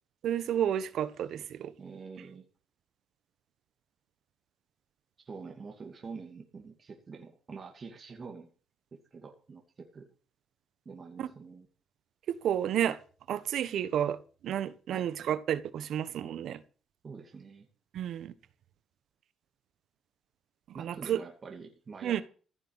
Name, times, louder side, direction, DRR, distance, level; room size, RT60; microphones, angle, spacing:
voice 1, 0.2-1.7 11.2-11.3 12.3-13.0 13.3-16.6 17.9-18.3 20.7-21.2 22.0-22.2, right 10 dB, 75° right, 1.3 m, -31 dB
voice 2, 1.8-2.5 5.3-8.5 8.9-10.1 10.9-11.7 14.9-15.1 17.0-17.7 20.7-22.2, right 5 dB, 40° right, 2.5 m, -46 dB
15.5 x 6.8 x 8.8 m
cardioid pair, 90°, 0 cm